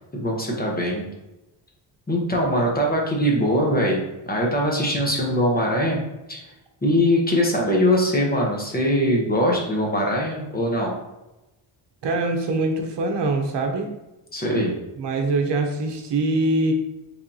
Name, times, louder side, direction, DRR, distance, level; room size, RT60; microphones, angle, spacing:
voice 1, 0.1-1.1 2.1-6.0 6.3-6.4 6.8-10.9 14.3-14.8, equal, 20° left, -1 dB, 1.0 m, -22 dB
voice 2, 12.0-13.9 15.0-16.7, right 2 dB, 65° right, 3 dB, 0.9 m, -23 dB
5.0 x 3.5 x 2.8 m, 0.98 s
cardioid pair, 105°, 45 cm